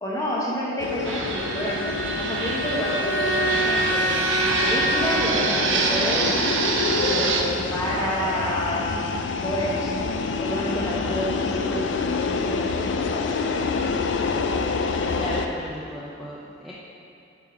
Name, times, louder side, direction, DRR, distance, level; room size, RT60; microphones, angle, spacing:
voice 1, 0.0-6.3 7.1-9.1 9.4-9.9 10.4-13.5, left 1 dB, 15° left, -5 dB, 1.0 m, -29 dB
sound 1, 0.8-15.5, left 4 dB, 70° left, 0.4 m, -28 dB
Fixed-wing aircraft airplane, 1.0-7.4, right 4 dB, 80° right, 0.7 m, -26 dB
Bowed string instrument, 1.2-5.7, right 1 dB, 45° left, 0.9 m, -27 dB
voice 2, 15.2-16.7, equal, ahead, -8 dB, 0.5 m, -35 dB
5.4 x 4.7 x 5.9 m, 2.6 s
head